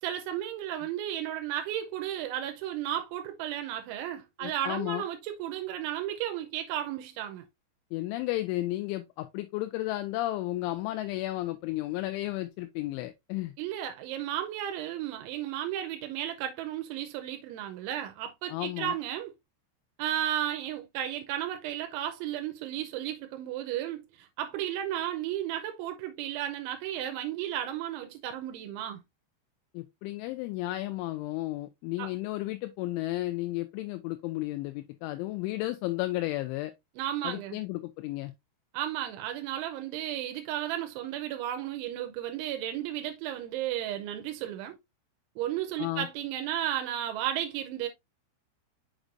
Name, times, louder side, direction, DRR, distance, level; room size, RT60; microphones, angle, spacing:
voice 1, 0.0-7.5 13.6-19.3 20.0-29.0 32.0-32.1 37.0-37.6 38.7-44.8 45.4-47.9, right 11 dB, 85° right, 3.1 m, -34 dB
voice 2, 4.4-5.0 7.9-13.5 18.5-19.0 29.7-36.7 37.2-38.3 45.8-46.1, left 17 dB, 85° left, 3.0 m, -33 dB
6.5 x 6.1 x 2.5 m
omnidirectional pair, 5.5 m